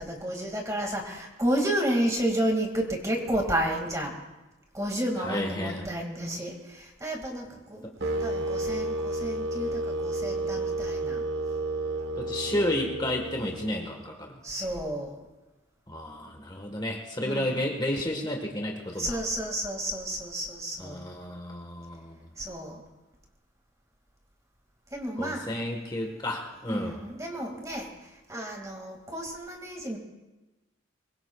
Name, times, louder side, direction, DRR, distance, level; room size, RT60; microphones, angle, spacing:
voice 1, 0.0-4.2 4.7-11.2 14.4-15.2 17.2-17.6 18.9-21.0 22.4-22.8 24.9-25.7 26.7-27.9 28.3-30.0, right 1 dB, 15° right, 2 dB, 2.1 m, -31 dB
voice 2, 5.2-5.9 12.2-14.3 15.9-19.2 20.8-22.2 25.2-27.0, left 1 dB, 20° left, 2 dB, 1.4 m, -31 dB
sound 1, 8.0-14.1, right 2 dB, 60° right, 1.3 m, -31 dB
24.0 x 21.5 x 2.4 m, 1.1 s
head